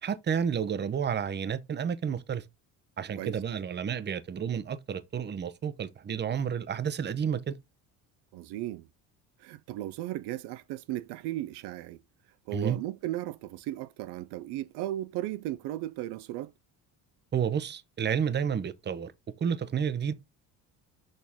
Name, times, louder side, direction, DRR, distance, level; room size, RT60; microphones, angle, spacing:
voice 1, 0.0-2.4 3.0-7.6 12.5-12.8 17.3-19.1 19.4-20.1, right 7 dB, 25° right, 0.7 m, -30 dB
voice 2, 8.3-8.9 9.4-12.0 12.5-16.5, right 14 dB, 65° right, 0.5 m, -36 dB
6.5 x 4.2 x 3.5 m
supercardioid pair, 80°, 43 cm